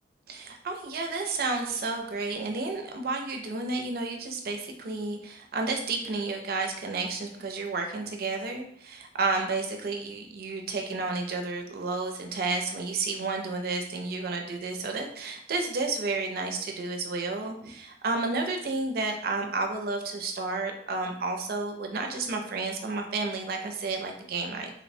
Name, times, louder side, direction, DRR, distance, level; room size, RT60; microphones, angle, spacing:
voice 1, 0.3-24.7, right 3 dB, 55° right, 3 dB, 0.4 m, -31 dB
3.0 x 2.0 x 2.6 m, 0.66 s
head